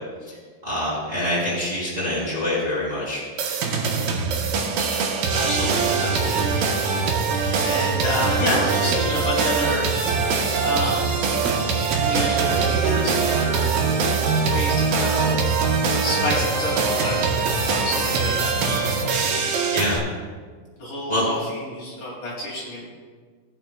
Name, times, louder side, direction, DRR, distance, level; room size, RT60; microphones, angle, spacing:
voice 1, 0.6-3.2 19.7-20.0 21.1-21.3, left 1 dB, 15° right, -8 dB, 3.3 m, -25 dB
sound 1, 3.4-20.0, right 4 dB, 70° right, 2.5 m, -22 dB
voice 2, 5.3-6.5 7.6-9.9 10.6-11.4 12.0-14.0 14.4-15.3 16.0-18.8 19.1-19.5 20.8-22.9, left 1 dB, 50° left, -6 dB, 3.8 m, -29 dB
19.5 x 9.0 x 2.3 m, 1.5 s
omnidirectional pair, 4.7 m